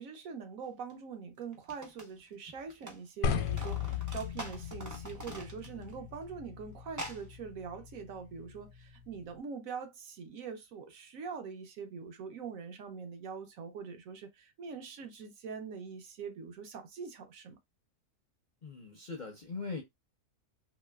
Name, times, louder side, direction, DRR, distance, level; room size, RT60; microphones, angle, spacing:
voice 1, 0.0-17.6, right 6 dB, 65° right, 1.0 m, -43 dB
sound 1, 0.9-1.0 1.5-3.0 3.2-5.9 6.2-6.3 6.9-7.2, right 1 dB, 20° right, 0.5 m, -45 dB
sound 2, 3.2-9.4, left 7 dB, 80° left, 1.1 m, -38 dB
voice 2, 5.6-6.0 18.6-19.8, left 4 dB, 50° left, 0.5 m, -41 dB
3.0 x 3.0 x 2.2 m
omnidirectional pair, 1.6 m